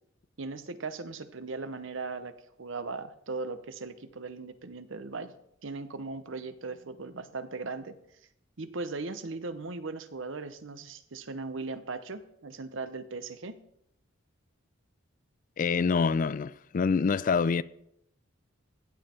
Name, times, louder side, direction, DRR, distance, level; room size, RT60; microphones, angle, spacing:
voice 1, 0.4-5.3 5.6-8.0 8.6-13.6, right 3 dB, 70° right, 0.9 m, -38 dB
voice 2, 15.6-17.6, left 5 dB, 40° left, 0.3 m, -26 dB
15.5 x 7.5 x 4.4 m
head